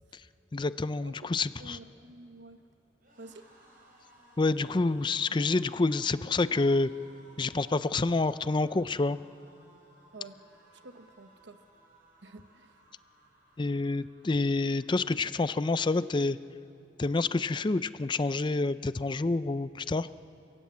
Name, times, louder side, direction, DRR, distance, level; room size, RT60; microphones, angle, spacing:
voice 1, 0.5-1.8 4.4-6.9 7.4-9.2 13.6-16.4 17.0-20.1, left 3 dB, 25° left, 14 dB, 0.4 m, -28 dB
sound 1, 1.6-16.8 17.1-17.3 17.6-18.4, right 1 dB, 50° right, 6.0 m, -61 dB
voice 2, 1.6-2.6 3.2-3.5 10.1-10.4 10.7-11.6 12.2-12.8, right 2 dB, 75° right, 8 dB, 1.0 m, -49 dB
30.0 x 16.5 x 8.5 m, 3.0 s
head